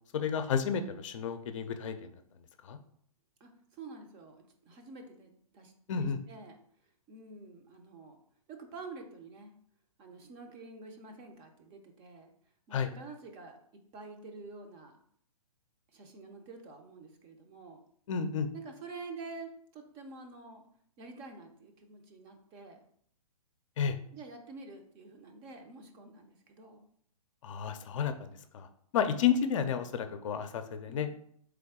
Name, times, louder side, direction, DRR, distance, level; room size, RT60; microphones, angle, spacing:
voice 1, 0.1-2.1 2.6-2.8 5.9-6.2 12.7-12.9 18.1-18.5 23.8-24.0 27.4-28.7 28.9-31.1, left 7 dB, 55° left, 8 dB, 0.5 m, -31 dB
voice 2, 3.4-6.6 7.1-8.2 8.5-9.5 10.0-12.3 12.7-13.6 13.9-15.0 15.9-17.8 18.5-20.6 21.0-22.8 24.1-26.8 30.9-31.1, right 3 dB, 25° right, 4 dB, 0.6 m, -48 dB
3.8 x 3.4 x 3.6 m, 0.65 s
hypercardioid pair, 130°, 19 cm